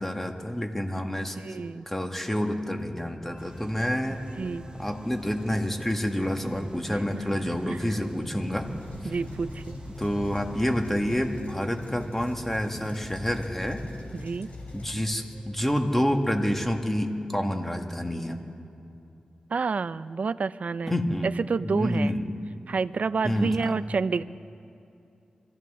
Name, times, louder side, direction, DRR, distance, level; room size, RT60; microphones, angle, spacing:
voice 1, 0.0-4.2 4.8-8.7 9.0-9.1 10.0-13.8 14.7-18.4 20.9-21.3 21.6-22.3 23.2-23.7, equal, 10° left, 4 dB, 1.8 m, -28 dB
voice 2, 1.1-1.9 4.1-4.6 7.7-7.8 9.0-9.7 14.1-14.5 19.5-21.0 21.5-22.1 22.7-24.2, right 4 dB, 65° right, 16 dB, 0.4 m, -29 dB
sound 1, 2.5-16.9, left 1 dB, 40° left, 2.9 m, -46 dB
sound 2, 3.4-11.4, right 2 dB, 35° right, 0.8 m, -46 dB
sound 3, 8.6-15.0, left 2 dB, 65° left, 3.4 m, -42 dB
25.5 x 14.5 x 3.7 m, 2.7 s
cardioid pair, 50°, 3 cm